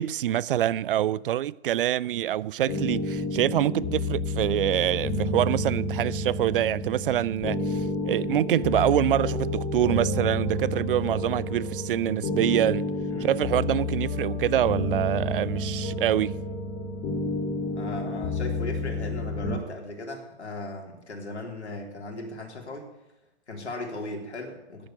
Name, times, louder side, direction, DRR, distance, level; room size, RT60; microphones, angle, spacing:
voice 1, 0.0-12.8 13.2-16.3, right 12 dB, 55° right, 0.5 m, -25 dB
sound 1, 2.7-19.6, left 1 dB, 30° left, 3.0 m, -30 dB
voice 2, 13.1-13.5 17.7-22.9 23.5-24.9, left 2 dB, 80° left, 3.8 m, -37 dB
10.5 x 10.5 x 9.7 m
figure-of-eight pair, 115°, 33 cm